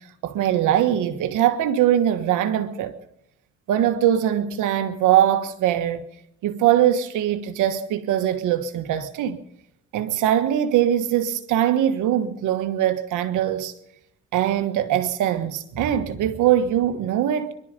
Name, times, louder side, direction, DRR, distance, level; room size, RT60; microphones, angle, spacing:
voice 1, 0.2-2.9 3.7-6.0 6.4-9.4 9.9-13.7 14.3-17.5, right 11 dB, 90° right, 1.5 m, -21 dB
22.0 x 12.5 x 5.3 m
cardioid pair, 90°, 30 cm